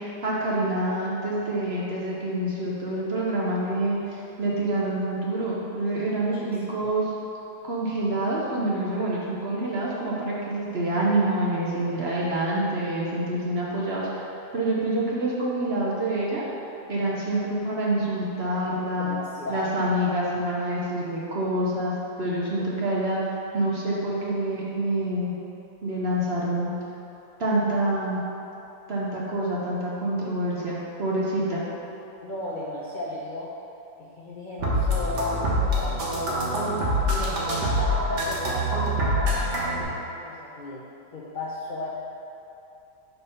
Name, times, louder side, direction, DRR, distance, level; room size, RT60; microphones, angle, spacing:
voice 1, 0.0-7.1 7.6-14.3 14.5-16.4 16.9-19.2 19.5-23.2 23.5-25.3 25.8-26.7 27.4-28.2 28.9-31.6, right 1 dB, 50° right, -5 dB, 0.9 m, -27 dB
voice 2, 6.2-6.9 19.0-19.9 32.2-33.5 34.0-40.8 41.1-42.0, left 1 dB, 55° left, -6 dB, 0.5 m, -35 dB
sound 1, 34.6-39.8, equal, 85° right, 1.7 m, -25 dB
5.2 x 4.4 x 5.5 m, 2.8 s
omnidirectional pair, 1.8 m